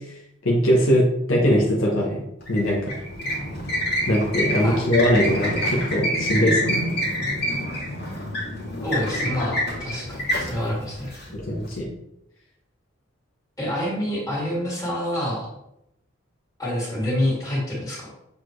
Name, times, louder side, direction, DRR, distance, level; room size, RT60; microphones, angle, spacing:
voice 1, 0.4-2.2 2.5-2.9 4.1-6.9 11.3-11.9, equal, 85° left, -2 dB, 1.2 m, -21 dB
sound 1, 2.4-11.7, equal, 55° left, 2.0 m, -27 dB
voice 2, 8.8-11.1 13.6-15.5 16.6-18.1, left 1 dB, 15° left, -5 dB, 2.3 m, -27 dB
7.2 x 4.1 x 3.2 m, 0.81 s
head